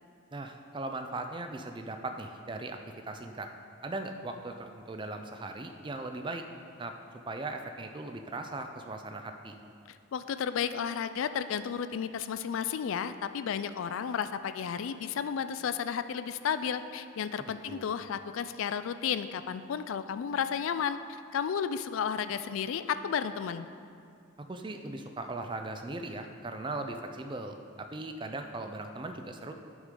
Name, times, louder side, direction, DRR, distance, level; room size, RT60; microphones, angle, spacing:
voice 1, 0.3-2.8 3.1-3.5 3.8-6.4 6.8-6.9 7.3-9.6 17.4-17.9 24.5-29.5, right 2 dB, 25° right, 6 dB, 0.4 m, -39 dB
voice 2, 9.9-23.7, left 7 dB, 75° left, 12 dB, 0.3 m, -33 dB
11.0 x 6.2 x 3.8 m, 2.4 s
head